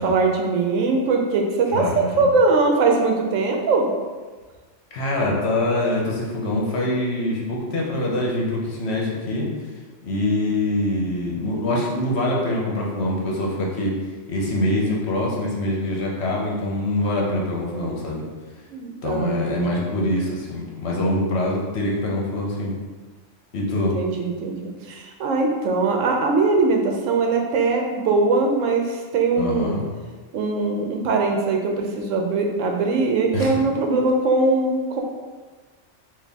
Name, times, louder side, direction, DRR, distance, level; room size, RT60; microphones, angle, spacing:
voice 1, 0.0-3.9 18.7-20.2 23.7-29.7 30.3-35.0, right 3 dB, 85° right, 2 dB, 1.0 m, -21 dB
voice 2, 1.7-2.1 4.9-9.5 10.0-13.9 14.3-18.2 19.0-22.8 23.5-24.0 29.4-29.9 33.3-33.5, left 1 dB, 60° left, -2 dB, 1.0 m, -24 dB
4.0 x 2.5 x 3.4 m, 1.4 s
omnidirectional pair, 1.3 m